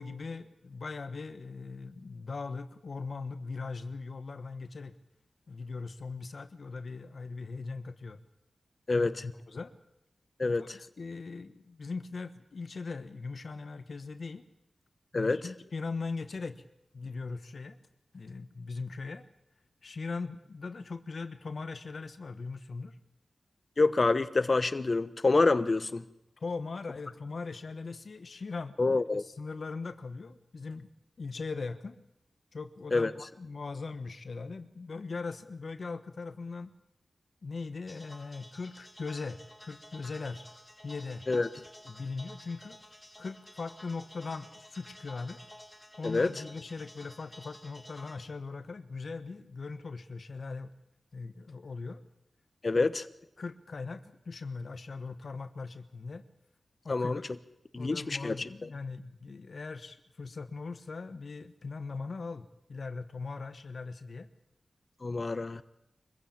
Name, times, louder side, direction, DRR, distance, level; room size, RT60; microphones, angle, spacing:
voice 1, 0.0-4.9 5.5-8.2 8.9-9.7 10.4-14.4 15.1-16.6 16.9-17.8 18.1-19.3 19.8-23.0 26.4-30.9 31.2-32.0 32.5-36.7 37.4-40.4 40.8-41.2 41.8-42.8 43.2-45.4 46.0-50.7 51.1-52.0 52.7-52.8 53.4-56.2 56.8-57.2 57.8-64.3, left 4 dB, 65° left, 11 dB, 1.2 m, -40 dB
voice 2, 10.4-10.8 15.1-15.4 23.8-26.0 28.8-29.2 32.9-33.1 41.3-41.5 46.0-46.3 52.6-53.1 56.9-57.2 57.7-58.7 65.0-65.6, left 3 dB, 45° left, 13 dB, 1.1 m, -27 dB
sound 1, 37.9-48.2, left 1 dB, 10° left, 5.3 m, -52 dB
24.0 x 15.5 x 8.7 m, 0.84 s
cardioid pair, 65°, 0 cm